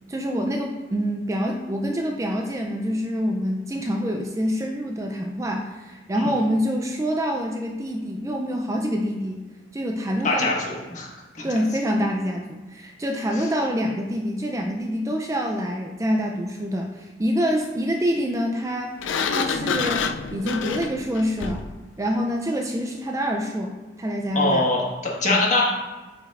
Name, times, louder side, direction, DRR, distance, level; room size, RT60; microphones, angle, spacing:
voice 1, 0.1-9.4 9.7-10.5 11.4-18.9 19.3-21.7 22.0-24.7 25.2-25.4, equal, 15° right, 2 dB, 0.4 m, -26 dB
voice 2, 10.2-11.1 11.3-11.5 13.4-13.5 24.3-25.6, left 2 dB, 40° left, -3 dB, 1.5 m, -23 dB
Sliding door, 19.0-21.8, left 5 dB, 85° left, 0.4 m, -27 dB
8.7 x 5.1 x 2.5 m, 1.2 s
head